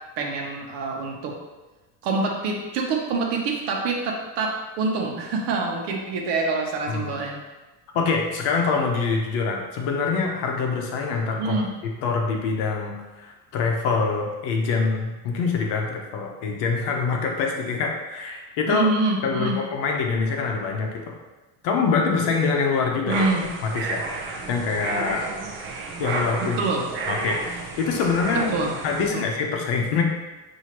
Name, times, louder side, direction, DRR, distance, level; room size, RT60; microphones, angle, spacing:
voice 1, 0.2-1.4 2.0-7.4 11.4-11.7 18.7-19.6 23.1-23.5 26.4-26.9 28.3-28.7 29.1-29.2, right 3 dB, 60° right, 0 dB, 1.0 m, -26 dB
voice 2, 6.9-7.2 7.9-18.9 19.2-21.1 21.6-23.3 23.6-24.1 24.5-25.2 26.0-26.6 27.1-28.5 28.8-30.0, left 4 dB, 65° left, 1 dB, 0.9 m, -25 dB
sound 1, 23.1-29.1, right 3 dB, 30° right, 0.4 m, -31 dB
6.0 x 2.8 x 2.9 m, 1.2 s
cardioid pair, 150°, 46 cm